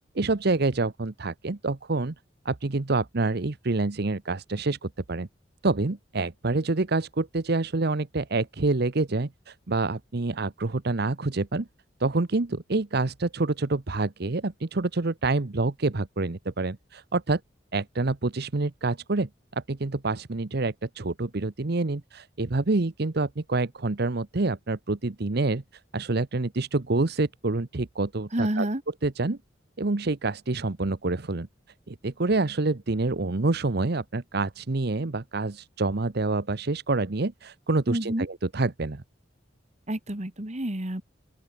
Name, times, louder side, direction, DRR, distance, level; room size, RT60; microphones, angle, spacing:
voice 1, 0.1-2.1 2.4-5.3 5.6-11.7 12.0-17.4 17.7-25.6 25.9-28.7 29.0-29.4 29.8-31.5 31.9-39.0, right 3 dB, 60° right, 1.0 m, -27 dB
voice 2, 28.3-28.8 37.9-38.3 39.9-41.0, right 1 dB, 40° right, 2.5 m, -28 dB
open air
head